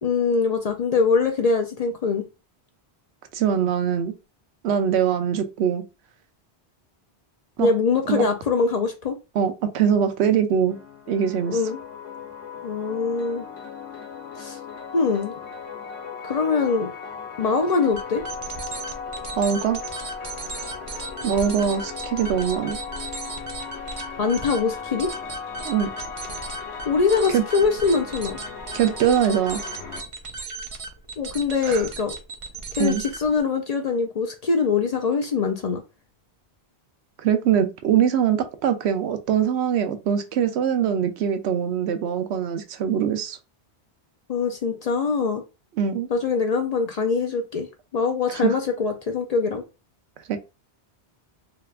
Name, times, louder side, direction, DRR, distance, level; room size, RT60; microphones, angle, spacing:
voice 1, 0.0-2.2 7.6-9.2 11.5-11.8 12.6-13.5 14.4-14.6 14.9-15.3 16.2-16.9 17.4-18.2 24.2-25.1 26.9-28.4 31.2-32.2 32.7-35.8 44.3-45.4 46.1-47.7 47.9-49.6, left 4 dB, 55° left, 0.4 m, -23 dB
voice 2, 3.3-4.1 4.6-5.8 7.6-7.7 8.1-8.2 9.3-10.8 11.1-11.6 19.4-19.8 21.2-22.8 25.6-25.9 27.3-27.4 28.7-29.6 31.6-31.8 32.8-33.0 37.2-43.4 45.8-46.1 48.3-48.5 50.3-50.4, right 8 dB, 80° right, 0.8 m, -22 dB
sound 1, 10.7-30.0, left 6 dB, 85° left, 1.0 m, -37 dB
sound 2, 17.9-33.4, right 4 dB, 40° right, 0.5 m, -36 dB
3.3 x 2.8 x 2.3 m
omnidirectional pair, 1.1 m